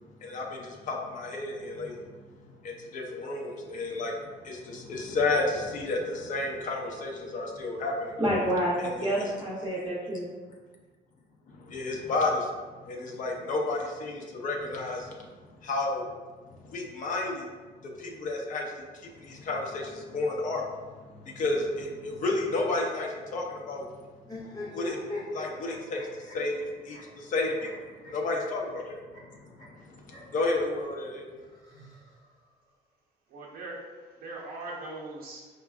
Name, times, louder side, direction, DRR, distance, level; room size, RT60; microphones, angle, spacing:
voice 1, 0.2-2.0 2.3-8.2 9.0-9.3 11.5-12.5 12.9-15.2 15.6-16.1 16.7-17.5 17.8-23.9 24.7-25.0 25.3-27.7 28.1-29.0 29.9-31.3, left 2 dB, 50° left, -1 dB, 0.6 m, -32 dB
voice 2, 8.2-10.3, right 1 dB, 15° right, -6 dB, 0.7 m, -28 dB
sound 1, 24.2-30.4 31.4-32.5, left 2 dB, 20° left, 1.0 m, -42 dB
voice 3, 33.3-35.5, right 2 dB, 60° right, -3 dB, 0.6 m, -40 dB
4.8 x 2.2 x 2.3 m, 1.4 s
cardioid pair, 110°, 17 cm